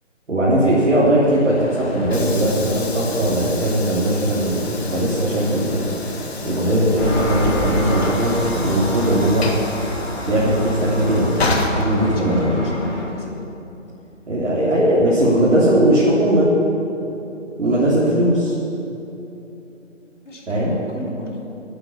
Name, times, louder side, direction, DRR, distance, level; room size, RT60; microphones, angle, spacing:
voice 1, 0.3-5.9 6.4-9.4 10.3-11.3 11.7-12.6 14.3-16.5 17.6-18.5 20.5-20.7, right 1 dB, 65° right, -9 dB, 3.5 m, -18 dB
Train / Sliding door, 1.2-12.6, left 2 dB, 55° left, 1.7 m, -30 dB
Engine, 7.0-13.0, left 1 dB, 5° left, 1.1 m, -28 dB
voice 2, 11.6-13.4 20.2-21.4, left 2 dB, 70° left, -2 dB, 3.3 m, -33 dB
11.5 x 8.6 x 8.4 m, 2.9 s
figure-of-eight pair, 155°, 38 cm